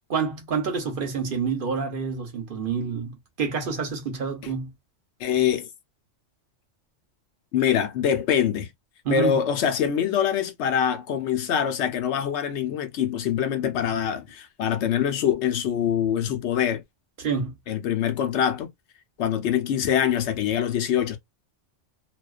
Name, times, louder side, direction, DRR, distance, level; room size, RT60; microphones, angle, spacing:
voice 1, 0.1-4.7 9.0-9.4 17.2-17.5, right 5 dB, 50° right, 0.8 m, -28 dB
voice 2, 5.2-5.7 7.5-8.7 9.1-16.8 17.7-18.7 19.2-21.2, left 9 dB, 70° left, 0.8 m, -24 dB
2.3 x 2.3 x 2.3 m
omnidirectional pair, 1.2 m